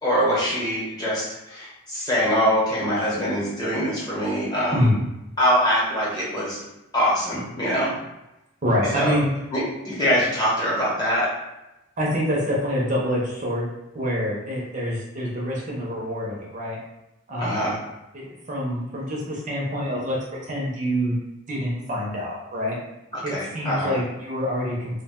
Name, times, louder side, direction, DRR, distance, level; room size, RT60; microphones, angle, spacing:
voice 1, 0.0-4.9 5.4-6.6 6.9-7.9 8.9-9.1 9.5-11.3 17.4-17.8 23.1-24.0, equal, 20° left, -6 dB, 0.9 m, -23 dB
voice 2, 8.6-9.3 12.0-13.7 13.9-16.8 17.3-17.7 18.1-20.2 20.4-21.2 21.5-22.8 23.2-25.0, equal, 35° right, -4 dB, 0.5 m, -26 dB
2.3 x 2.1 x 3.5 m, 0.93 s
head